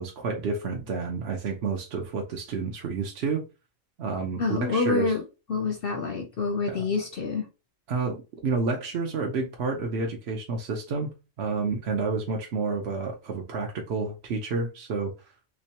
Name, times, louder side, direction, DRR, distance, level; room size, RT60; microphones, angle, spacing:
voice 1, 0.0-3.4 4.0-5.1 6.7-6.8 7.9-15.1, right 4 dB, 60° right, 0.8 m, -30 dB
voice 2, 4.4-5.2 5.5-7.5, left 4 dB, 55° left, 0.7 m, -27 dB
3.2 x 3.0 x 2.8 m
omnidirectional pair, 1.4 m